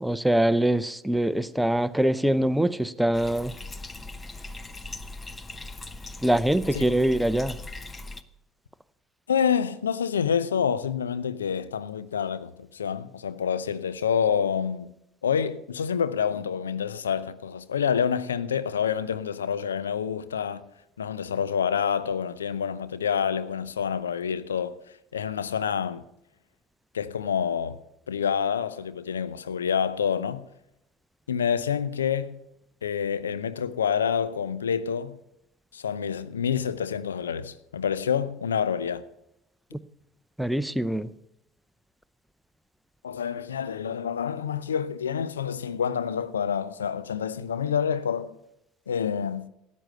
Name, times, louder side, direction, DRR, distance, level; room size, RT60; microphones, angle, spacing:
voice 1, 0.0-3.5 6.2-7.6 40.4-41.1, right 1 dB, 5° right, 0.6 m, -23 dB
Bathtub (filling or washing), 3.1-8.2, left 2 dB, 15° left, 0.9 m, -40 dB
voice 2, 9.3-14.9 15.2-20.6 21.0-24.8 25.1-26.0 26.9-27.8 28.1-30.4 31.3-32.4 32.8-35.2 35.7-39.0 43.0-48.3 48.9-49.5, left 7 dB, 80° left, 0.6 m, -27 dB
13.5 x 9.1 x 6.6 m
figure-of-eight pair, 65°, 0 cm